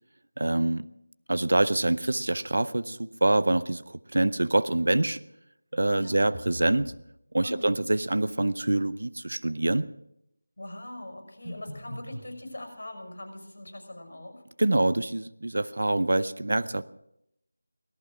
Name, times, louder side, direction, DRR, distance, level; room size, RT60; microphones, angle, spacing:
voice 1, 0.4-0.9 1.3-5.2 5.7-6.9 7.3-9.9 14.6-16.8, right 2 dB, 65° right, 16 dB, 0.7 m, -25 dB
sound 1, 6.1-7.0 11.4-12.3, right 1 dB, 10° right, 7.8 m, -40 dB
voice 2, 10.6-14.4, left 1 dB, 60° left, 5 dB, 5.7 m, -42 dB
18.0 x 14.0 x 5.0 m, 0.80 s
figure-of-eight pair, 175°, 0 cm